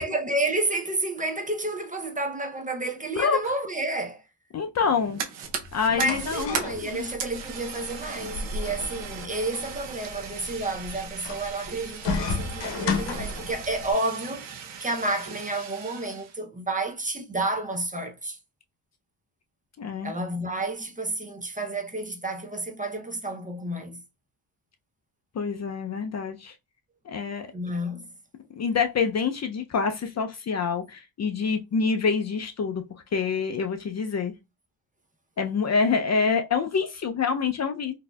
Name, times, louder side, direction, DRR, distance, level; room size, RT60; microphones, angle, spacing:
voice 1, 0.0-4.2 5.9-18.4 20.0-24.0 27.5-28.1, right 2 dB, 20° right, 0.5 m, -30 dB
voice 2, 4.5-5.2 5.7-7.1 19.8-20.1 25.3-26.5 27.1-27.5 28.6-32.8 33.1-34.3 35.4-37.9, left 5 dB, 40° left, 0.5 m, -26 dB
Fire, 4.8-16.4, right 7 dB, 90° right, 0.8 m, -38 dB
sound 1, 5.4-13.9, left 4 dB, 80° left, 0.8 m, -34 dB
4.0 x 2.7 x 2.2 m
cardioid pair, 110°, 42 cm